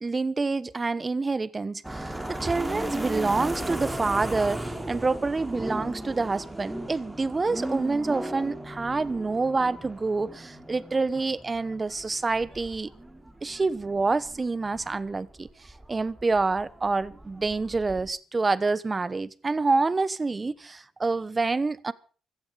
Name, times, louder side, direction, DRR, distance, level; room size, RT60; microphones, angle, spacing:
voice 1, 0.0-12.9 13.4-21.9, right 3 dB, 25° right, 1.0 m, -27 dB
sound 1, 1.8-18.1, right 1 dB, 10° right, 2.9 m, -36 dB
16.0 x 13.5 x 5.7 m
cardioid pair, 90°, 0 cm